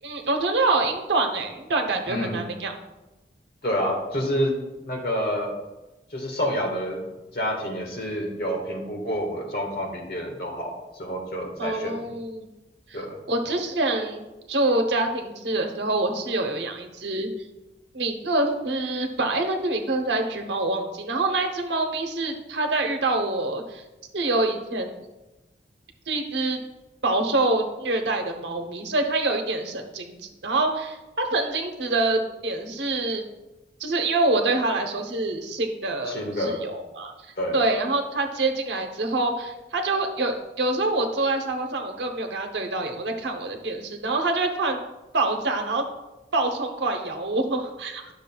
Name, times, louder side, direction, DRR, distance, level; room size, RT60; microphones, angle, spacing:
voice 1, 0.0-2.7 11.6-12.5 12.9-14.2 14.5-17.3 17.9-23.8 24.1-25.0 26.1-26.6 27.0-33.2 33.8-37.1 37.5-44.8 45.1-45.8 46.3-48.1, right 2 dB, 85° right, 4 dB, 0.9 m, -26 dB
voice 2, 2.1-2.4 3.6-4.5 4.8-5.5 6.1-7.0 7.3-12.1 12.9-13.2 36.1-36.6 37.4-37.6, equal, 60° left, 1 dB, 1.6 m, -28 dB
10.5 x 6.4 x 2.3 m, 1.0 s
head